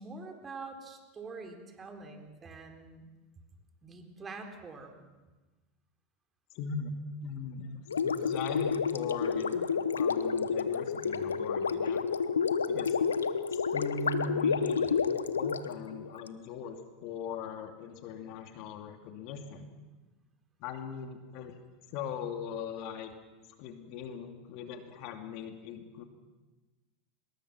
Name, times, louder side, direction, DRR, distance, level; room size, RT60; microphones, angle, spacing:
voice 1, 0.0-3.1 3.8-5.1, right 3 dB, 25° right, 4 dB, 4.1 m, -45 dB
voice 2, 6.5-7.0 7.2-12.0 12.7-13.0 13.7-14.9 15.3-19.7 20.6-21.5 21.9-23.1 23.6-26.0, left 5 dB, 55° left, 5 dB, 2.6 m, -40 dB
Gurgling, 7.9-16.3, left 6 dB, 85° left, 1.0 m, -30 dB
25.0 x 21.0 x 6.1 m, 1.2 s
hypercardioid pair, 85°, 0 cm